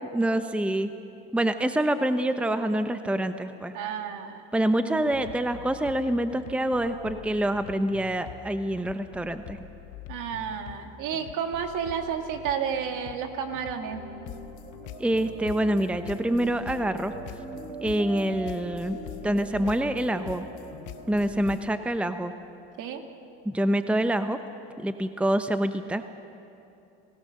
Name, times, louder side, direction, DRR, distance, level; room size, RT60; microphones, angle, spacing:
voice 1, 0.1-0.9 1.3-3.7 4.5-9.6 15.0-17.1 17.8-19.0 19.2-20.5 21.1-22.3 23.4-24.4 24.8-26.1, right 1 dB, 5° right, 9 dB, 0.9 m, -26 dB
voice 2, 3.7-4.4 4.8-5.0 10.1-14.0 22.8-23.0, right 7 dB, 65° right, 5 dB, 2.4 m, -31 dB
sound 1, 5.0-21.8, left 11 dB, 65° left, 1.1 m, -45 dB
sound 2, 13.8-22.4, right 1 dB, 85° right, 4.4 m, -42 dB
30.0 x 17.0 x 6.6 m, 2.8 s
hypercardioid pair, 80°, 34 cm